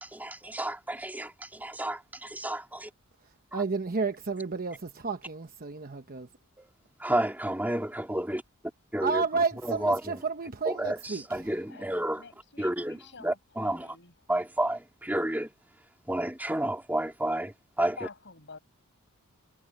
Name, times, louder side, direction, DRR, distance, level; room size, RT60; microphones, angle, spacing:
voice 1, 0.0-2.9 3.5-3.6 7.0-8.4 8.9-10.2 10.6-12.2 12.6-14.0 14.3-15.5 16.1-18.0, right 1 dB, 10° right, 2.6 m, -31 dB
voice 2, 3.5-6.3 9.0-11.2, right 4 dB, 45° right, 1.0 m, -31 dB
voice 3, 11.7-14.1 18.0-18.6, left 4 dB, 55° left, 7.8 m, -48 dB
head